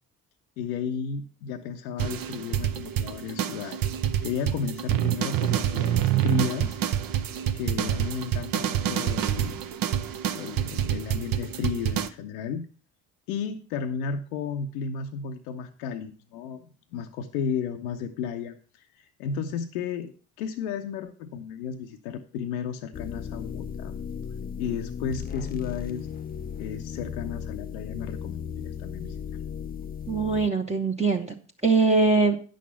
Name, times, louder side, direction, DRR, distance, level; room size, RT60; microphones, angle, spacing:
voice 1, 0.6-3.8 4.2-6.8 7.5-9.6 10.0-10.1 10.4-12.7 13.3-23.9 24.6-26.1 26.6-29.2, left 7 dB, 80° left, 5 dB, 0.7 m, -33 dB
sound 1, 2.0-12.1, right 11 dB, 50° right, 0.7 m, -27 dB
sound 2, 22.9-30.5, left 7 dB, 20° left, 0.5 m, -36 dB
voice 2, 30.1-31.3 31.6-32.4, right 3 dB, 15° right, 1 dB, 0.9 m, -22 dB
9.2 x 6.3 x 5.4 m, 0.40 s
hypercardioid pair, 50°, 42 cm